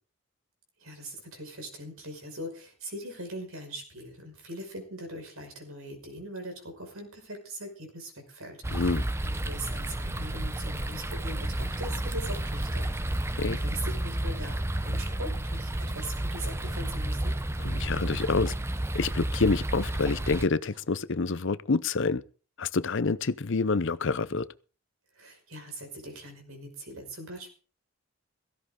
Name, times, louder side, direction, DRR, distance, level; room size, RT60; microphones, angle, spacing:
voice 1, 0.8-13.3 13.6-17.4 25.1-27.5, right 1 dB, 70° right, 5.6 m, -41 dB
sound 1, 8.6-20.5, right 1 dB, 10° right, 0.6 m, -31 dB
voice 2, 8.7-9.1 13.4-13.6 17.6-18.5 18.9-22.2 22.6-24.5, left 4 dB, 55° left, 0.6 m, -27 dB
sound 2, 15.0-15.5 17.8-19.7 20.6-21.1 22.0-22.1 23.0-23.4, right 1 dB, 30° right, 3.3 m, -47 dB
17.0 x 15.5 x 3.8 m
head